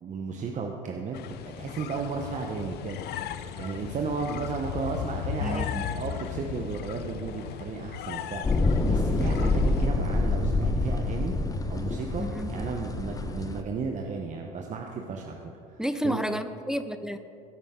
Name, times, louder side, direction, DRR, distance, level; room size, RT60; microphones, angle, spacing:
voice 1, 0.0-11.3 11.7-16.2, right 5 dB, 40° right, 2 dB, 1.0 m, -34 dB
sound 1, 1.1-9.9, left 10 dB, 55° left, 0.6 m, -36 dB
voice 2, 5.4-5.9 12.2-12.6 15.8-17.2, equal, 5° right, 10 dB, 0.5 m, -31 dB
sound 2, 8.4-13.6, left 2 dB, 15° left, 0.9 m, -26 dB
16.0 x 8.9 x 3.8 m, 2.5 s
supercardioid pair, 90°, 20 cm